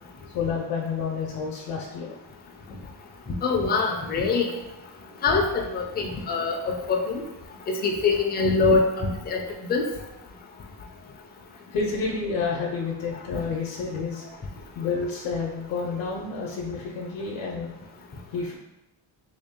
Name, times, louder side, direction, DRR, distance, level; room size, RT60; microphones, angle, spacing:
voice 1, 0.3-2.1 11.7-14.3 14.7-17.7 18.3-18.6, left 4 dB, 80° left, -1 dB, 0.7 m, -29 dB
voice 2, 3.4-4.5 5.2-7.2 7.7-9.4 9.7-9.9 13.3-13.4, left 4 dB, 25° left, 1 dB, 0.4 m, -24 dB
3.4 x 2.7 x 3.5 m, 0.96 s
cardioid pair, 155°, 45 cm